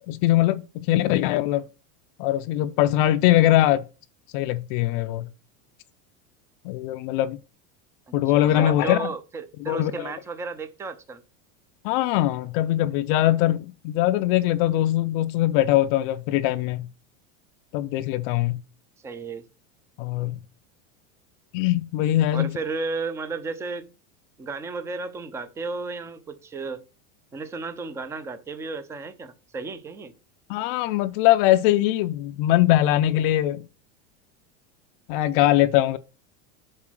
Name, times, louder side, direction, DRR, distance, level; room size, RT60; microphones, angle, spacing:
voice 1, 0.1-1.6 2.2-3.8 4.3-5.3 6.6-7.4 8.1-9.1 9.7-10.1 11.8-16.9 17.7-18.6 20.0-20.4 21.5-22.5 30.5-33.7 35.1-36.0, left 14 dB, 45° left, 0.5 m, -21 dB
voice 2, 8.1-11.2 19.0-19.5 22.3-23.9 24.4-26.8 27.3-30.1, right 4 dB, 10° right, 0.4 m, -33 dB
7.7 x 4.1 x 6.1 m
supercardioid pair, 160°, 37 cm